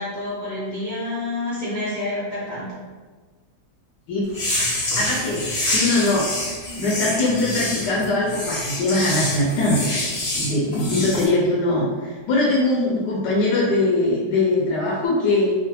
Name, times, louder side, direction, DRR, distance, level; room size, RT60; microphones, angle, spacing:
voice 1, 0.0-2.8, left 2 dB, 40° right, -10 dB, 0.7 m, -28 dB
sound 1, 4.3-11.2, left 1 dB, 60° left, 0.4 m, -26 dB
voice 2, 4.9-6.3 6.8-9.9 10.3-15.5, left 2 dB, 90° left, -5 dB, 1.2 m, -21 dB
3.1 x 2.1 x 2.7 m, 1.4 s
omnidirectional pair, 1.8 m